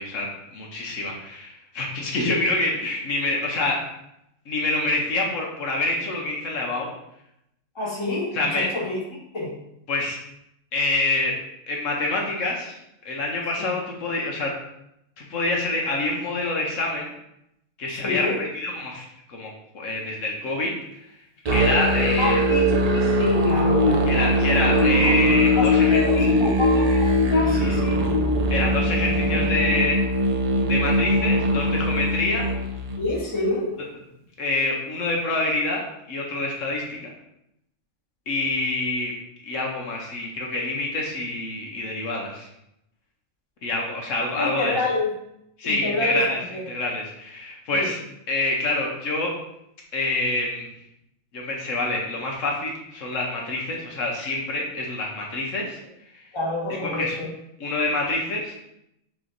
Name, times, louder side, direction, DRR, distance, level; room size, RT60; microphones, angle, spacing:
voice 1, 0.0-3.8 4.5-6.9 8.3-8.7 9.9-10.2 10.7-11.3 11.7-12.8 13.0-14.5 15.2-17.1 17.8-20.7 21.5-22.4 24.1-26.0 27.6-27.7 28.5-30.0 30.7-32.4 34.4-37.1 38.3-39.1 39.4-42.5 43.6-44.8 45.6-46.4 46.7-48.0 48.3-49.3 49.9-50.6 51.3-55.8 56.9-57.2 57.6-58.5, left 2 dB, 75° left, -1 dB, 1.2 m, -26 dB
voice 2, 7.7-9.5 13.6-13.7 17.9-18.4 22.2-25.1 25.6-28.0 32.5-32.6 33.0-33.8 44.4-45.1 45.6-46.6 47.7-47.9 56.3-57.3, left 2 dB, 25° left, -4 dB, 1.2 m, -28 dB
Musical instrument, 21.5-33.1, equal, 60° right, 0.4 m, -21 dB
4.3 x 3.0 x 3.8 m, 0.80 s
omnidirectional pair, 1.4 m